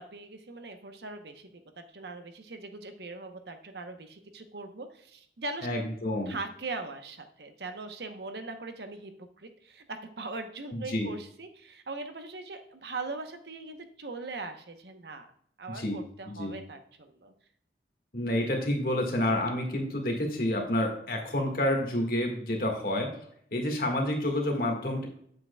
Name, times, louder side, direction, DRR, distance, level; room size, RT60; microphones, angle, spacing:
voice 1, 0.0-1.5 1.8-5.7 6.3-15.3 15.6-17.3, right 3 dB, 70° right, 7 dB, 0.9 m, -40 dB
voice 2, 5.6-6.3 10.7-11.1 15.7-16.0 16.2-16.5 18.1-23.1 23.5-25.1, left 1 dB, 55° left, 2 dB, 1.7 m, -29 dB
8.6 x 7.6 x 2.2 m, 0.66 s
head